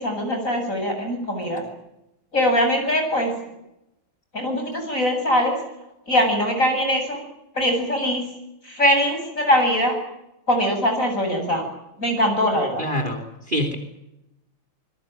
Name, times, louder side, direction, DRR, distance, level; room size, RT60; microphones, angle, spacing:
voice 1, 0.0-1.6 2.3-3.3 4.3-5.6 6.1-7.2 7.5-8.2 8.6-10.0 10.5-11.6 12.0-12.9, equal, 35° left, 4 dB, 8.4 m, -22 dB
voice 2, 12.8-13.2 13.5-13.8, equal, 20° right, 7 dB, 3.3 m, -24 dB
26.0 x 22.0 x 9.0 m, 0.89 s
omnidirectional pair, 2.4 m